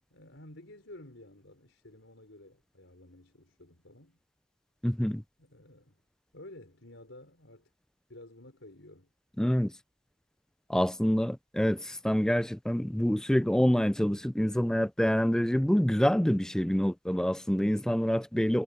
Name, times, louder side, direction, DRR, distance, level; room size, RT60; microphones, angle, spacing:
voice 1, 0.1-4.2 5.4-6.0 6.3-7.7 8.1-9.1, left 1 dB, 75° left, 4.6 m, -52 dB
voice 2, 4.8-5.2 9.4-9.7 10.7-18.6, equal, 5° left, 0.3 m, -26 dB
head